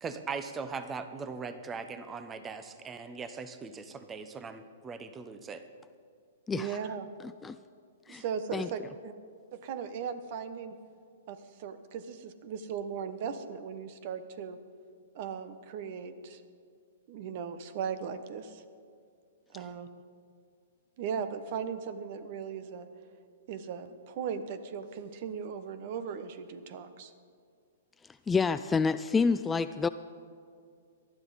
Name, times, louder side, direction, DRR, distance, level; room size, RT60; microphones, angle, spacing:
voice 1, 0.0-5.6, right 5 dB, 15° right, 10 dB, 0.9 m, -40 dB
voice 2, 6.5-7.1 8.1-9.1 9.5-10.8 11.3-14.6 15.1-16.4 17.1-18.6 19.5-19.9 21.0-22.9 23.5-27.1, right 7 dB, 50° right, 11 dB, 1.0 m, -38 dB
voice 3, 28.3-29.9, left 5 dB, 10° left, 12 dB, 0.3 m, -28 dB
19.0 x 12.0 x 4.1 m, 2.3 s
hypercardioid pair, 130°, 0 cm